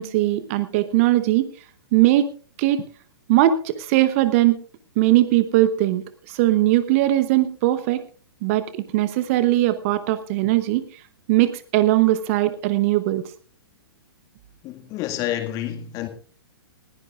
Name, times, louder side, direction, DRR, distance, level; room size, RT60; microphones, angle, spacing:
voice 1, 0.0-1.5 1.9-2.3 2.6-2.8 3.3-4.6 5.0-6.0 6.3-8.0 8.4-10.8 11.3-13.2, right 15 dB, 35° right, 0.8 m, -19 dB
voice 2, 14.6-16.1, left 12 dB, 25° left, 1.9 m, -29 dB
20.0 x 15.5 x 2.4 m
figure-of-eight pair, 115°, 13 cm